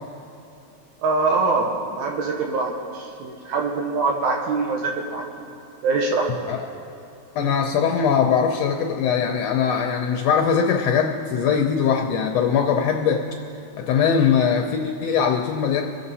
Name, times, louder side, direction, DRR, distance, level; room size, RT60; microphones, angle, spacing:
voice 1, 1.0-5.5 5.8-6.5, right 3 dB, 85° right, 1 dB, 2.4 m, -24 dB
voice 2, 7.3-13.2 13.8-15.8, left 7 dB, 75° left, 2 dB, 1.7 m, -21 dB
23.0 x 7.8 x 4.2 m, 2.8 s
omnidirectional pair, 3.3 m